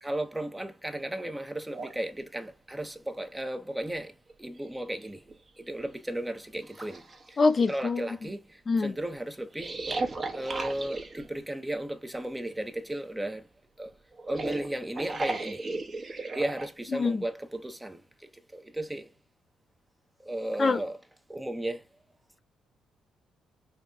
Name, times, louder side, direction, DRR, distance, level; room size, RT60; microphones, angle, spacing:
voice 1, 0.0-4.1 4.4-5.2 5.7-7.0 7.7-8.4 8.8-9.7 10.3-13.4 13.8-13.9 14.3-15.6 16.3-18.0 18.5-19.1 20.2-21.0 21.3-21.8, right 1 dB, 10° right, 0.7 m, -34 dB
sound 1, 1.7-2.0 3.8-3.9 4.3-5.3 5.9-6.0 6.6-7.8 9.5-11.3 14.1-16.7, right 3 dB, 35° right, 1.0 m, -35 dB
voice 2, 7.4-8.0 8.7-8.9 16.9-17.2 20.6-20.8, left 4 dB, 40° left, 0.6 m, -24 dB
5.4 x 2.9 x 2.3 m
cardioid pair, 90°, 0 cm